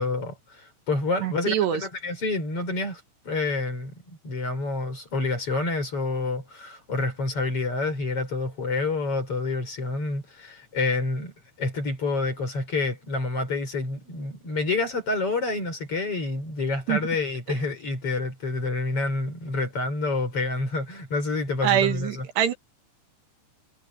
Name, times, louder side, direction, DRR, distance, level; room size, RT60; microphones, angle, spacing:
voice 1, 0.0-11.3 11.6-22.3, left 3 dB, 30° left, 5.5 m, -28 dB
voice 2, 1.2-1.9 16.9-17.0 21.6-22.5, right 10 dB, 70° right, 3.6 m, -24 dB
omnidirectional pair, 5.4 m